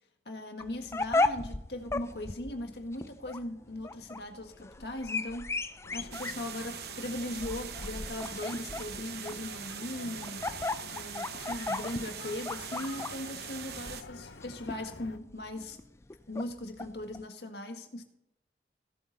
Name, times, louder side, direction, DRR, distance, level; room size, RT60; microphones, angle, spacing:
voice 1, 0.2-5.6 5.9-10.5 10.9-15.8 16.3-18.0, left 1 dB, 70° left, 4 dB, 1.7 m, -39 dB
sound 1, 0.6-17.2, left 2 dB, 15° left, 0.4 m, -36 dB
sound 2, 5.8-15.2, left 3 dB, 90° left, 0.8 m, -49 dB
sound 3, 6.1-14.0, right 9 dB, 65° right, 0.8 m, -42 dB
16.5 x 7.9 x 4.1 m, 0.83 s
head